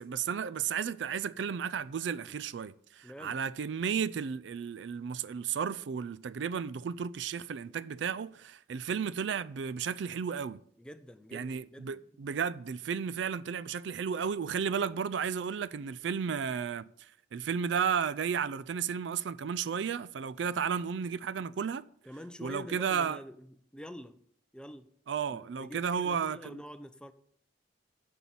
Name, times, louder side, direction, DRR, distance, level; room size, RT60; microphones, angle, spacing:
voice 1, 0.0-10.6 11.3-16.9 17.3-21.8 22.4-23.2 25.1-26.6, right 7 dB, 70° right, 0.4 m, -33 dB
voice 2, 3.0-3.4 10.8-12.2 22.0-24.2 24.5-24.9 25.3-27.1, equal, 5° left, 0.5 m, -46 dB
8.0 x 5.5 x 7.6 m
head